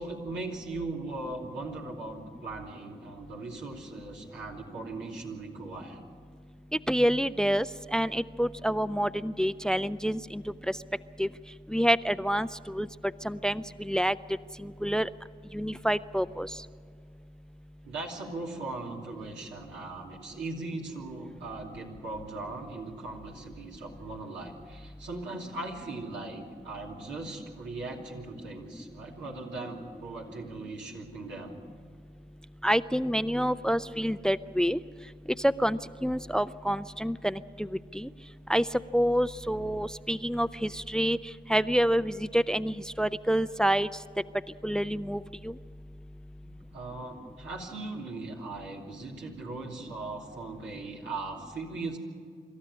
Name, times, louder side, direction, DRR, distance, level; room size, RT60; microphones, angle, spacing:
voice 1, 0.0-6.0 17.8-31.6 46.4-52.0, right 3 dB, 90° right, -1 dB, 2.9 m, -39 dB
voice 2, 6.9-7.7 7.9-10.4 10.7-10.8 11.2-11.3 11.7-12.9 13.2-14.1 14.6-15.1 15.5-16.5 32.6-34.8 35.4-37.7 37.9-38.1 38.5-38.6 38.9-41.2 41.5-43.9 44.6-45.5, equal, 5° left, 16 dB, 0.5 m, -27 dB
26.0 x 13.0 x 9.7 m, 2.2 s
supercardioid pair, 50°, 18 cm